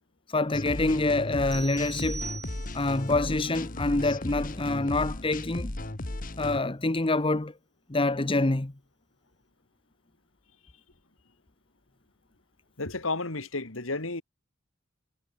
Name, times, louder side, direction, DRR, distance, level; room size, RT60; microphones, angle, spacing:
voice 1, 0.3-2.3 2.7-5.7 6.4-7.5 7.9-8.7, left 2 dB, 25° left, 0.9 m, -26 dB
sound 1, 0.5-6.6, left 1 dB, 45° left, 1.7 m, -35 dB
sound 2, 1.5-3.0, right 5 dB, 15° right, 0.8 m, -41 dB
voice 2, 12.8-14.2, left 3 dB, 90° left, 3.0 m, -32 dB
head